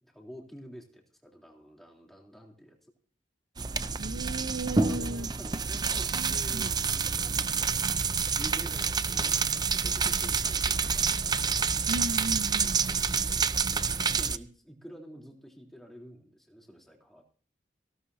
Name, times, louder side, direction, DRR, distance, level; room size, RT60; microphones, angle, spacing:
voice 1, 0.0-2.8 4.9-6.8 7.1-11.7 12.6-13.5 13.9-17.2, equal, ahead, 3.5 m, -49 dB
sound 1, 3.6-14.4, right 5 dB, 25° right, 0.6 m, -28 dB
voice 2, 4.0-5.3 6.1-6.8 11.9-13.0, right 2 dB, 75° right, 0.8 m, -36 dB
18.5 x 17.0 x 2.8 m
head